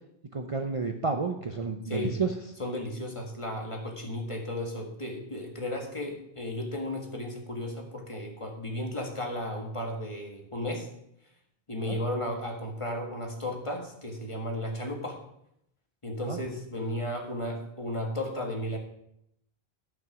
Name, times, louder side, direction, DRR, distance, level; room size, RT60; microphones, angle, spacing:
voice 1, 0.3-2.3 11.9-12.0 16.3-16.4, right 4 dB, 40° right, 4 dB, 0.7 m, -30 dB
voice 2, 2.6-10.9 11.7-15.2 16.0-18.8, left 1 dB, 30° left, 1 dB, 1.8 m, -34 dB
12.5 x 6.0 x 6.1 m, 0.77 s
omnidirectional pair, 1.0 m